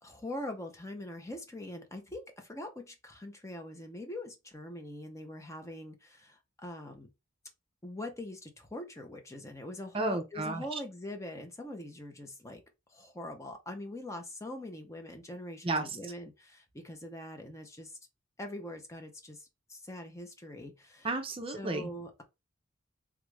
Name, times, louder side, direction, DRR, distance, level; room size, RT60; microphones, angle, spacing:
voice 1, 0.0-7.1 7.8-12.6 12.9-18.0 18.4-21.2 21.5-22.2, left 1 dB, 15° left, 0.6 m, -43 dB
voice 2, 9.9-10.6 15.6-15.8 21.0-21.9, right 2 dB, 30° right, 0.5 m, -32 dB
3.5 x 2.4 x 3.1 m
head